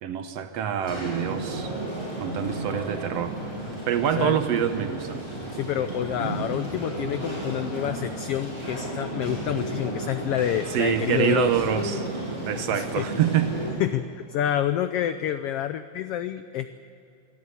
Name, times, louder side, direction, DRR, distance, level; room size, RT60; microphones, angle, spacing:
voice 1, 0.0-1.7 2.2-3.4 3.9-5.2 10.7-12.0 12.5-13.6, right 9 dB, 70° right, 9 dB, 1.7 m, -26 dB
sound 1, 0.8-13.7, right 1 dB, 10° left, 6.9 m, -33 dB
voice 2, 5.5-11.6 12.7-13.1 13.8-16.7, left 10 dB, 90° left, 11 dB, 1.3 m, -28 dB
24.5 x 12.5 x 9.5 m, 2.6 s
omnidirectional pair, 3.5 m